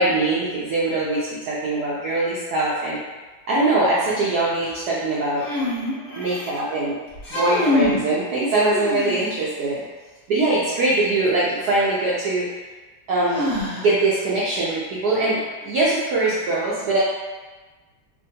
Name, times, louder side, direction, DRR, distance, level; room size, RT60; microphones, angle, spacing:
voice 1, 0.0-3.0 3.5-5.4 6.1-7.0 7.3-9.9 10.3-12.5 13.1-13.5 13.7-17.0, right 2 dB, 85° right, -7 dB, 0.8 m, -22 dB
sound 1, 5.4-6.6 7.1-8.0 8.5-9.4 11.4-11.5 13.3-14.1, left 1 dB, 50° left, 1.2 m, -25 dB
3.4 x 2.2 x 2.7 m, 1.3 s
omnidirectional pair, 2.2 m